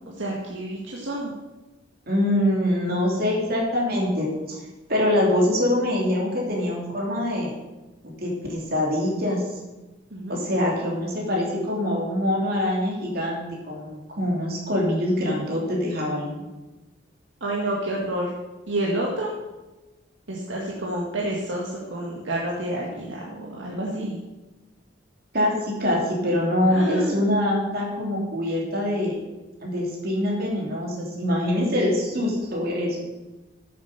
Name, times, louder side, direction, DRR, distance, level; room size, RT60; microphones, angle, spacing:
voice 1, 0.2-1.3 10.1-10.4 17.4-18.3 18.7-19.3 20.3-24.2 26.7-27.3, right 1 dB, 80° right, -3 dB, 1.8 m, -29 dB
voice 2, 2.1-4.6 4.9-7.5 8.2-9.4 10.3-16.4 25.3-29.2 29.6-33.1, left 1 dB, 55° right, -2 dB, 2.8 m, -24 dB
8.9 x 7.6 x 6.8 m, 1.1 s
head